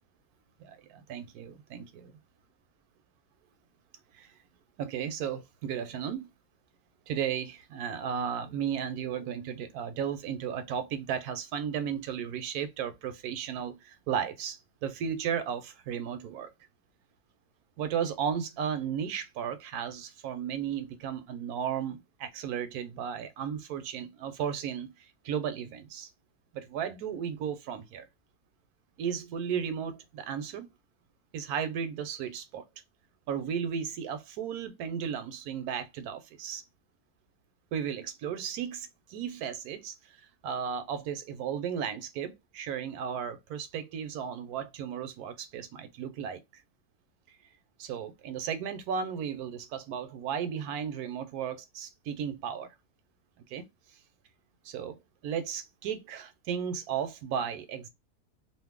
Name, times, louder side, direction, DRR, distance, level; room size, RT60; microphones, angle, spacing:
voice 1, 0.6-2.1 4.1-4.3 4.8-6.3 7.1-16.5 17.8-26.1 26.5-28.1 29.0-30.7 31.3-32.7 33.3-36.6 37.7-40.0 40.4-46.4 47.8-52.7 53.5-53.6 54.6-55.0 55.2-57.9, right 8 dB, 75° right, 1.0 m, -34 dB
2.6 x 2.6 x 3.5 m
omnidirectional pair, 1.6 m